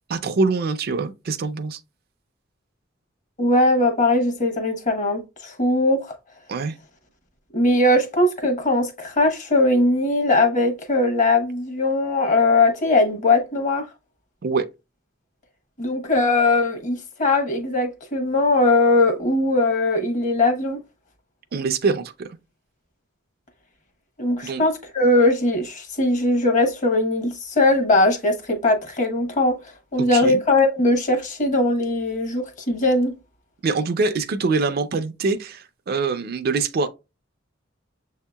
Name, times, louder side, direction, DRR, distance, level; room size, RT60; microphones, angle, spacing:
voice 1, 0.1-1.8 6.5-6.7 14.4-14.7 21.5-22.3 24.4-24.6 30.0-30.4 33.6-36.9, right 4 dB, 55° right, 0.4 m, -24 dB
voice 2, 3.4-6.1 7.5-13.9 15.8-20.8 24.2-29.6 29.9-33.1, left 2 dB, 40° left, 1.0 m, -20 dB
6.7 x 2.8 x 2.2 m
head